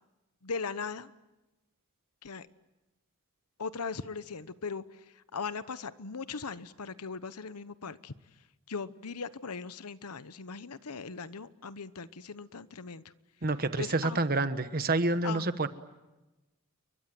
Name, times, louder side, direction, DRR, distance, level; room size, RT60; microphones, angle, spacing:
voice 1, 0.4-1.1 2.2-2.5 3.6-8.1 8.7-13.0 13.8-14.2 15.2-15.5, left 5 dB, 90° left, 15 dB, 1.0 m, -39 dB
voice 2, 13.4-15.7, right 2 dB, 40° right, 11 dB, 1.2 m, -28 dB
30.0 x 23.0 x 7.7 m, 1.0 s
head